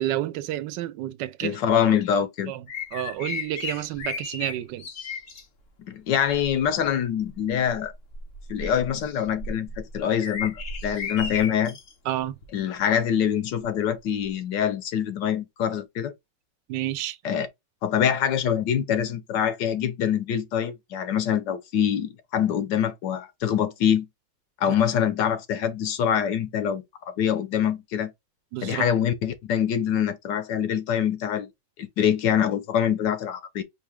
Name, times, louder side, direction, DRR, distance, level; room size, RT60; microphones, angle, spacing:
voice 1, 0.0-1.6 2.5-2.7 2.9-4.9 12.0-12.4 16.7-17.2 24.7-24.8 28.5-28.9, right 13 dB, 80° right, 1.2 m, -30 dB
voice 2, 1.4-2.5 5.8-7.9 8.5-11.8 12.5-16.1 17.2-17.5 17.8-24.1 24.6-26.8 27.2-28.1 28.6-31.5 31.8-33.6, left 9 dB, 75° left, 1.5 m, -25 dB
sound 1, 2.7-5.4 6.3-6.6 7.2-11.9 12.4-12.6 14.4-14.5, left 4 dB, 50° left, 1.3 m, -35 dB
4.6 x 2.8 x 3.4 m
omnidirectional pair, 1.9 m